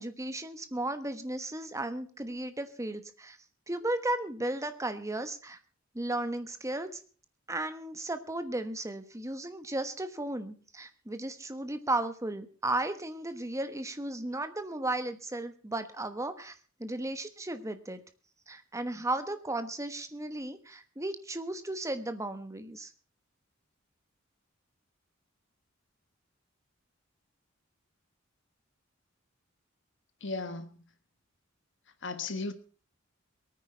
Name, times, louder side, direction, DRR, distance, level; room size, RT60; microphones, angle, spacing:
voice 1, 0.0-3.4 3.7-5.6 5.9-7.0 7.5-16.5 16.8-18.0 18.5-22.9, right 2 dB, 15° right, 1.2 m, -35 dB
voice 2, 30.2-30.7 32.0-32.5, left 3 dB, 60° left, 1.5 m, -35 dB
22.0 x 9.5 x 4.5 m
head